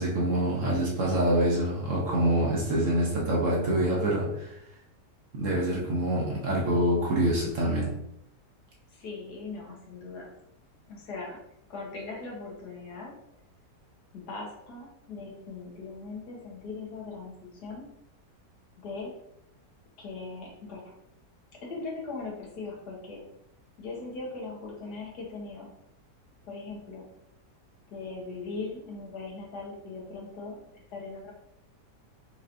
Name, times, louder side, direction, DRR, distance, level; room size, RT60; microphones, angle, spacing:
voice 1, 0.0-4.6 5.3-7.9, right 1 dB, 55° right, -3 dB, 1.1 m, -26 dB
voice 2, 8.9-10.3 10.9-11.4 11.7-13.1 14.1-17.9 18.8-19.1 20.0-20.9 21.5-23.2 23.8-25.7 26.4-27.1 27.9-31.3, left 3 dB, 70° left, -2 dB, 1.6 m, -40 dB
4.5 x 3.0 x 2.6 m, 0.77 s
omnidirectional pair, 1.8 m